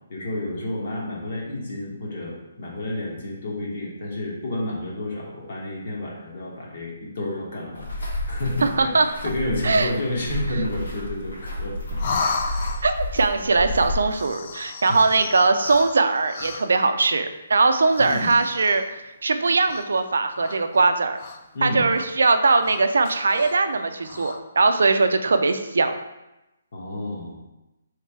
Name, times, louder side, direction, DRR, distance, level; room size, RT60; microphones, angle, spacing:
voice 1, 0.1-12.7 14.9-15.0 18.0-18.3 21.5-21.9 26.7-27.4, left 1 dB, 50° left, -3 dB, 1.2 m, -30 dB
sound 1, 7.7-14.0, left 1 dB, 85° left, 1.6 m, -31 dB
voice 2, 8.6-9.1 9.6-9.9 12.8-18.8 19.2-21.2 21.6-26.0, right 3 dB, 85° right, 8 dB, 0.4 m, -20 dB
sound 2, 12.0-13.1 14.0-16.8 17.8-19.0 19.6-20.1 20.4-21.6 21.9-22.1 22.5-23.6 24.0-24.4, left 4 dB, 35° left, 0.4 m, -34 dB
3.2 x 3.2 x 4.6 m, 0.96 s
hypercardioid pair, 170°, 0 cm